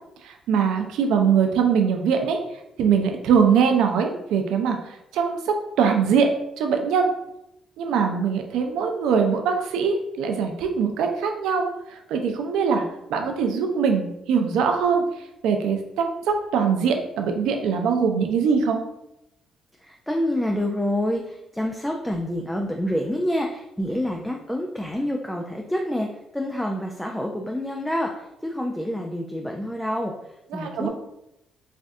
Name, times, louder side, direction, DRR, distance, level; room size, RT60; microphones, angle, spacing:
voice 1, 0.2-2.4 2.8-6.3 6.6-7.1 7.8-12.8 13.1-15.0 15.4-18.8 30.5-30.9, right 6 dB, 90° right, 4 dB, 0.3 m, -22 dB
voice 2, 19.8-30.9, left 1 dB, 5° left, 1 dB, 0.3 m, -27 dB
3.3 x 2.3 x 2.6 m, 0.85 s
cardioid pair, 90°, 0 cm